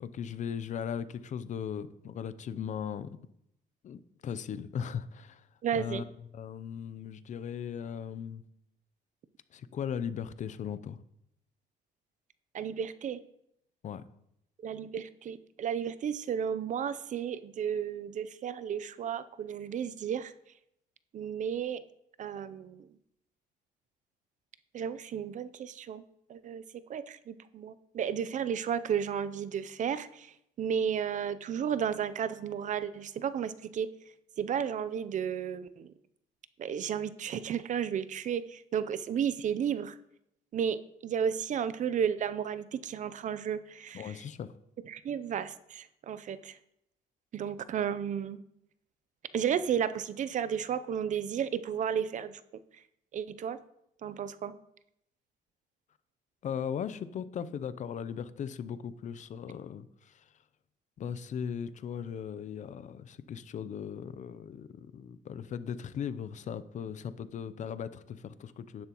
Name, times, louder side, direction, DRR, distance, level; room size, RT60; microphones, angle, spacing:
voice 1, 0.0-3.2 3.8-5.5 5.8-6.1 6.3-8.4 9.5-11.0 13.8-14.0 43.9-44.5 56.4-60.2 61.0-68.9, left 8 dB, 45° left, 14 dB, 0.6 m, -38 dB
voice 2, 5.6-6.0 12.5-13.2 14.6-20.3 21.1-21.8 22.2-22.9 24.7-26.0 26.3-26.6 26.9-33.9 34.4-35.9 36.6-40.0 40.5-44.2 44.9-46.6 47.3-48.4 49.3-52.4 52.7-52.8 53.1-53.6 54.0-54.5, right 8 dB, 45° right, 14 dB, 0.6 m, -33 dB
11.0 x 10.5 x 3.0 m, 0.77 s
cardioid pair, 110°, 17 cm